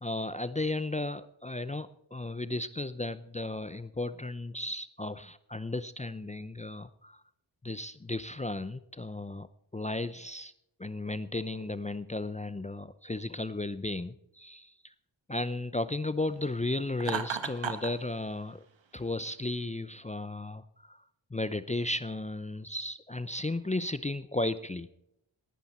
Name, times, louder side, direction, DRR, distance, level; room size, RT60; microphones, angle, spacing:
voice 1, 0.0-7.2 7.6-9.5 9.7-10.5 10.8-14.9 15.3-18.6 18.9-21.0 21.3-24.9, left 2 dB, 15° left, 14 dB, 0.6 m, -34 dB
Laughter, 17.0-17.9, right 7 dB, 65° right, 1.4 m, -33 dB
18.5 x 10.5 x 4.3 m, 0.79 s
cardioid pair, 45°, 48 cm